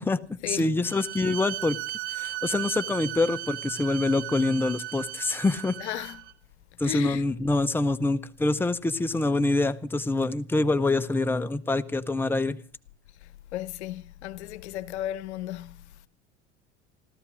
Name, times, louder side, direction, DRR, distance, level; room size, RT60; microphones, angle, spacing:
voice 1, 0.0-1.8 2.1-5.8 6.8-12.6, left 2 dB, 5° left, 0.8 m, -26 dB
Bowed string instrument, 0.8-6.3, right 15 dB, 75° right, 1.2 m, -36 dB
voice 2, 5.8-6.2 6.8-7.2 13.5-15.8, left 13 dB, 70° left, 0.9 m, -34 dB
16.0 x 13.0 x 6.3 m
hypercardioid pair, 85°, 35 cm